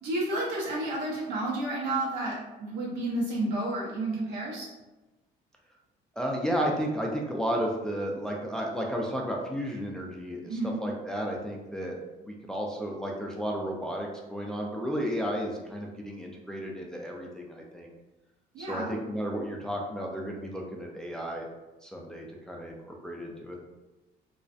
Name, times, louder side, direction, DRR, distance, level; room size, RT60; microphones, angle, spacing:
voice 1, 0.0-4.7 10.4-10.8 18.5-19.0, right 2 dB, 90° right, -4 dB, 0.9 m, -31 dB
voice 2, 6.2-12.0 12.2-17.9 18.6-21.5 21.8-23.6, equal, 5° left, -1 dB, 0.3 m, -33 dB
2.4 x 2.1 x 2.5 m, 1.1 s
cardioid pair, 110°, 17 cm